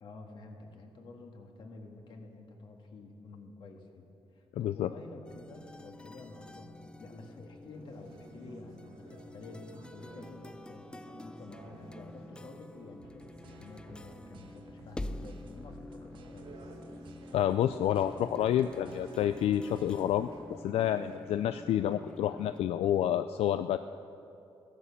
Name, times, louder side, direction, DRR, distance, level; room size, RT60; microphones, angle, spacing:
voice 1, 0.0-4.1 4.3-16.5, left 3 dB, 55° left, 2 dB, 1.7 m, -49 dB
voice 2, 4.6-4.9 17.3-20.3 20.6-23.8, left 11 dB, 85° left, 11 dB, 0.4 m, -29 dB
sound 1, 5.2-22.6, left 1 dB, 10° left, 0.3 m, -48 dB
sound 2, 7.7-21.2, right 3 dB, 75° right, 2.2 m, -54 dB
sound 3, 13.0-20.4, right 1 dB, 55° right, 1.0 m, -58 dB
15.0 x 11.0 x 7.1 m, 2.7 s
wide cardioid pair, 160°, 10 cm